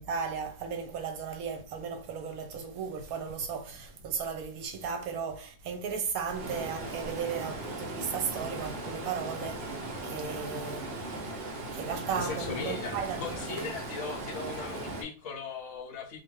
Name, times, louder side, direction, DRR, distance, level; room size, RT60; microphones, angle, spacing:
voice 1, 0.0-9.7 10.0-10.9 11.7-13.6, right 6 dB, 80° right, 1.1 m, -35 dB
Stream, 6.3-15.0, right 2 dB, 60° right, 0.7 m, -38 dB
voice 2, 12.2-16.2, left 4 dB, 65° left, 0.8 m, -38 dB
2.4 x 2.4 x 3.0 m
omnidirectional pair, 1.5 m